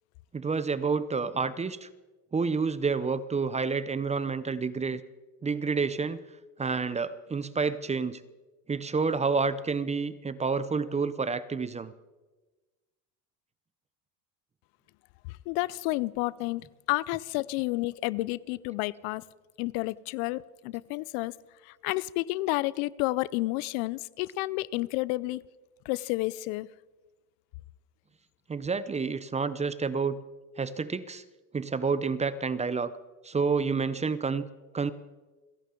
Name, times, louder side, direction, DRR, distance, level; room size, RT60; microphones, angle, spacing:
voice 1, 0.3-1.9 2.3-5.0 5.4-6.2 6.6-8.2 8.7-11.9 28.5-30.2 30.6-31.2 31.5-32.9 33.2-34.5 34.7-34.9, right 5 dB, 15° right, 16 dB, 0.5 m, -29 dB
voice 2, 15.3-19.2 19.6-21.3 21.6-25.4 25.9-26.7, left 20 dB, 85° left, 21 dB, 0.6 m, -30 dB
29.0 x 11.0 x 3.8 m, 1.2 s
supercardioid pair, 105°, 41 cm